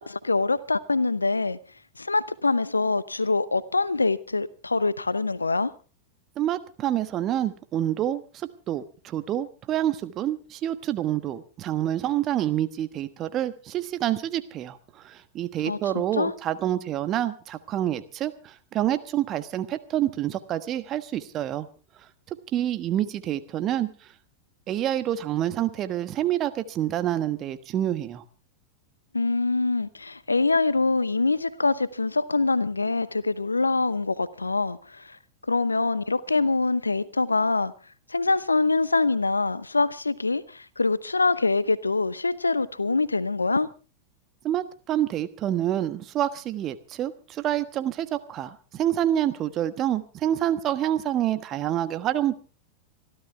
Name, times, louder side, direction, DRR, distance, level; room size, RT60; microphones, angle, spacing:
voice 1, 0.1-1.6 2.0-5.7 15.7-16.3 29.1-35.2 35.5-37.7 38.1-43.7, left 3 dB, 80° left, 0.8 m, -24 dB
voice 2, 6.4-14.8 15.0-21.7 22.5-23.9 24.7-28.2 44.4-52.4, right 11 dB, 30° right, 1.3 m, -27 dB
26.0 x 12.5 x 3.5 m
figure-of-eight pair, 90°, 0 cm